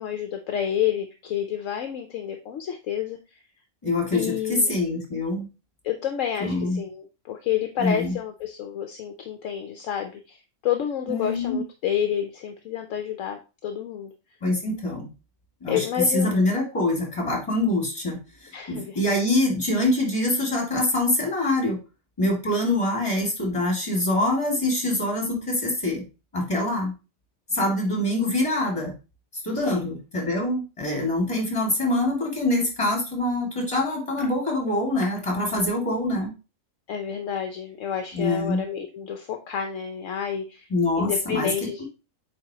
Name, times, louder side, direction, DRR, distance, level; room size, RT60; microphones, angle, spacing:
voice 1, 0.0-3.4 4.1-4.7 5.8-14.1 15.7-16.3 18.5-19.2 29.5-29.9 36.9-40.7 41.0-41.8, left 9 dB, 65° left, 6 dB, 1.0 m, -29 dB
voice 2, 3.8-5.5 6.4-6.8 7.8-8.1 11.1-11.6 14.4-15.1 15.6-15.8 16.1-18.2 18.7-21.8 22.2-26.0 26.3-26.9 27.5-28.9 29.4-36.3 38.1-38.6 40.7-41.5 41.8-41.9, left 1 dB, 20° left, 0 dB, 2.3 m, -24 dB
8.5 x 4.1 x 2.9 m, 0.30 s
omnidirectional pair, 1.5 m